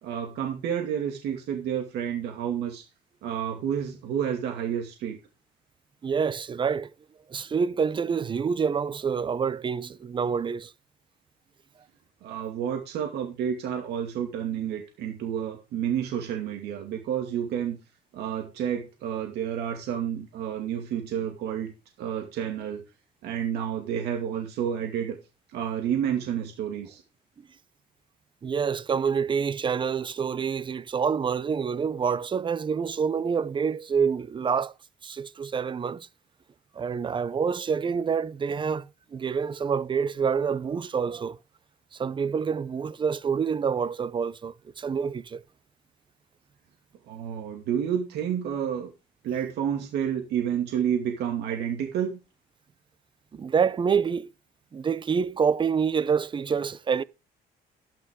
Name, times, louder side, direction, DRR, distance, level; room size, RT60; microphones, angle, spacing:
voice 1, 0.0-2.8 3.2-5.2 12.2-17.8 18.1-22.8 23.2-25.2 25.5-27.0 47.1-48.9 49.2-52.2, right 9 dB, 80° right, 2.3 m, -30 dB
voice 2, 6.0-6.9 7.3-10.7 28.4-34.7 35.0-36.1 36.7-41.4 41.9-45.4 53.3-54.3 54.7-57.0, right 6 dB, 30° right, 0.6 m, -27 dB
12.5 x 10.0 x 3.7 m
cardioid pair, 110°, 17 cm